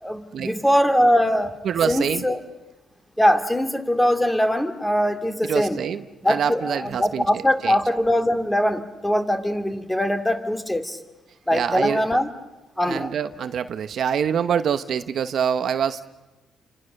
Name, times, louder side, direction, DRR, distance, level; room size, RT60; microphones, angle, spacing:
voice 1, 0.0-1.5 1.9-2.4 3.2-5.8 6.2-11.0 11.5-12.3 12.8-13.1, equal, 10° left, 6 dB, 2.4 m, -22 dB
voice 2, 1.6-2.2 5.4-7.2 7.6-7.7 11.5-12.2 12.8-16.0, right 8 dB, 60° right, 10 dB, 1.0 m, -25 dB
29.0 x 26.0 x 6.6 m, 1.1 s
cardioid pair, 90°, 0 cm